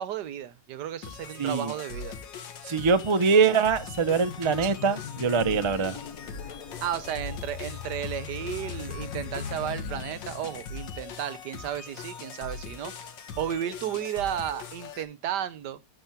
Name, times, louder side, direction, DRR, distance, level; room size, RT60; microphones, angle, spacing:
voice 1, 0.0-2.2 6.8-12.9 13.4-15.8, right 10 dB, 70° right, 1.4 m, -33 dB
sound 1, 1.0-15.0, left 5 dB, 80° left, 2.0 m, -41 dB
voice 2, 1.4-1.7 2.7-6.0, right 5 dB, 35° right, 0.4 m, -23 dB
sound 2, 2.7-2.8 3.4-11.0, left 7 dB, 55° left, 1.4 m, -40 dB
12.5 x 5.2 x 5.8 m
omnidirectional pair, 2.0 m